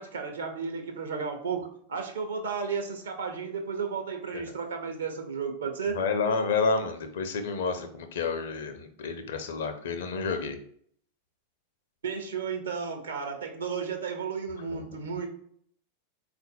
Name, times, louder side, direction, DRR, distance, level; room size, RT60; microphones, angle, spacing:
voice 1, 0.0-6.0 12.0-15.3, right 5 dB, 65° right, 4 dB, 0.7 m, -33 dB
voice 2, 5.9-10.6 14.7-14.8, left 4 dB, 60° left, 7 dB, 0.5 m, -30 dB
3.9 x 2.5 x 4.0 m, 0.63 s
figure-of-eight pair, 90°, 0 cm